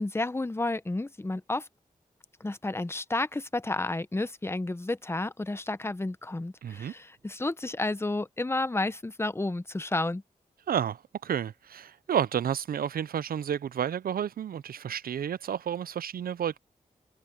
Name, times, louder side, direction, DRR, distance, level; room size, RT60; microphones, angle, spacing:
voice 1, 0.0-1.7 2.4-10.2, left 2 dB, 15° left, 0.7 m, -31 dB
voice 2, 6.6-6.9 10.7-16.6, right 9 dB, 85° right, 0.4 m, -31 dB
wide cardioid pair, 90°, 15 cm